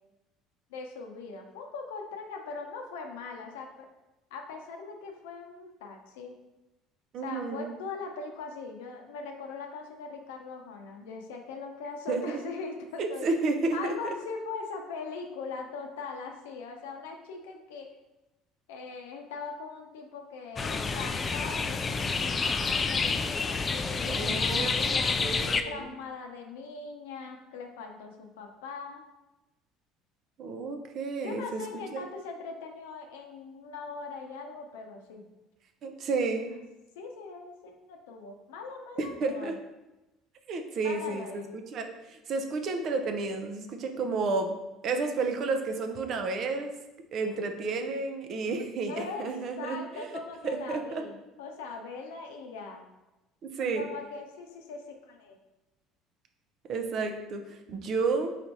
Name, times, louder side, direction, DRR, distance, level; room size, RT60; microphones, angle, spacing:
voice 1, 0.7-3.9 4.3-6.3 7.2-13.3 13.7-17.9 18.7-25.2 25.6-29.0 31.2-35.2 37.0-39.6 40.8-41.5 48.9-49.3 49.6-52.8 53.6-55.4, left 4 dB, 85° left, 3 dB, 0.6 m, -40 dB
voice 2, 7.1-7.7 12.1-12.2 13.0-13.9 24.1-25.9 30.4-31.6 31.9-32.1 35.8-36.6 39.0-39.6 40.5-44.6 44.8-46.7 47.1-50.2 50.4-51.0 53.4-53.8 56.7-58.3, right 3 dB, 55° right, 5 dB, 0.6 m, -31 dB
sound 1, 20.6-25.6, left 4 dB, 30° left, 0.3 m, -28 dB
4.2 x 2.6 x 4.6 m, 1.0 s
hypercardioid pair, 75°, 0 cm